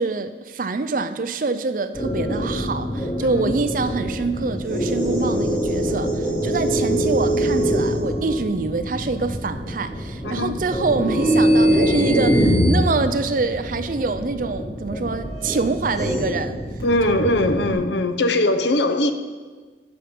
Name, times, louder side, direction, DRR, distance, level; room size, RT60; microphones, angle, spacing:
voice 1, 0.0-16.6 17.2-17.3, right 3 dB, 50° right, 0.5 m, -25 dB
sound 1, 1.9-17.7, equal, 20° left, 2.1 m, -23 dB
voice 2, 10.2-10.6 16.8-19.1, left 1 dB, 80° left, 0.7 m, -21 dB
13.0 x 6.3 x 5.3 m
head